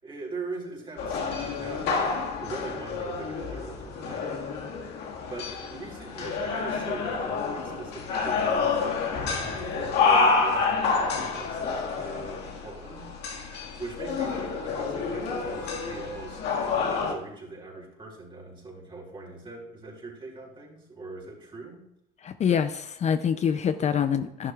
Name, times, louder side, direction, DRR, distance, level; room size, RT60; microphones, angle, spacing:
voice 1, 0.0-2.0 2.4-4.6 5.2-13.1 13.8-21.8, right 3 dB, 30° right, -2 dB, 4.0 m, -41 dB
sound 1, 1.0-17.1, left 4 dB, 85° left, 1.9 m, -28 dB
voice 2, 22.2-24.5, left 7 dB, 40° left, 10 dB, 0.5 m, -25 dB
11.5 x 11.5 x 2.4 m, 0.78 s
cardioid pair, 110°, 17 cm